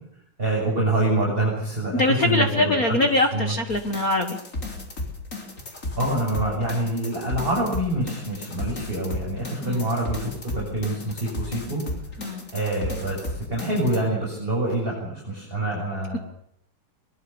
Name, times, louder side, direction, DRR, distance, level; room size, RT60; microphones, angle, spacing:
voice 1, 0.4-3.0 3.3-3.5 6.0-11.8 12.5-16.2, right 1 dB, 15° right, -3 dB, 6.6 m, -26 dB
voice 2, 1.9-4.4 9.6-9.8 12.2-12.5, left 2 dB, 55° left, 6 dB, 0.9 m, -23 dB
sound 1, 3.7-14.0, left 2 dB, 20° left, 3.7 m, -34 dB
22.0 x 22.0 x 7.1 m, 0.72 s
omnidirectional pair, 4.0 m